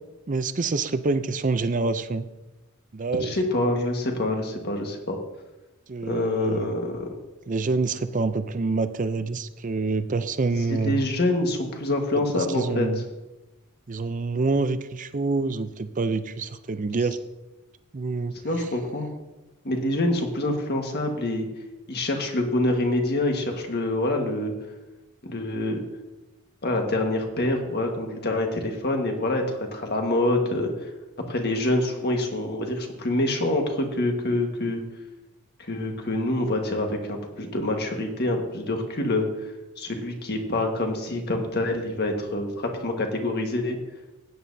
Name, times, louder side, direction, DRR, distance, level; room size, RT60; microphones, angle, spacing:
voice 1, 0.3-2.2 2.9-3.4 5.9-6.7 7.5-11.0 12.3-13.0 13.9-17.2 17.9-18.3, right 3 dB, 35° right, 11 dB, 0.5 m, -26 dB
voice 2, 3.2-5.2 6.0-7.2 10.7-12.9 18.4-19.1 19.6-21.4 21.9-24.5 25.3-25.8 26.6-30.9 31.3-34.8 35.6-43.8, left 1 dB, 50° left, 3 dB, 1.5 m, -26 dB
16.0 x 9.4 x 2.7 m, 1.0 s
head